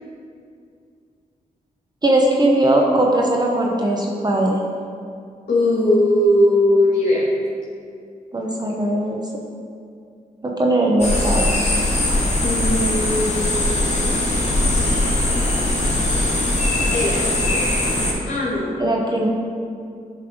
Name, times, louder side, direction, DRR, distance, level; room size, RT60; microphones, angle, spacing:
voice 1, 2.0-4.6 8.3-9.3 10.4-11.5 18.8-19.3, right 1 dB, 25° right, -1 dB, 0.9 m, -19 dB
voice 2, 5.5-7.2 12.4-14.4 16.9-18.7, left 1 dB, 70° left, -8 dB, 1.7 m, -20 dB
sound 1, 11.0-18.1, left 1 dB, 45° left, 1.7 m, -20 dB
8.8 x 3.3 x 5.0 m, 2.3 s
cardioid pair, 60°, 16 cm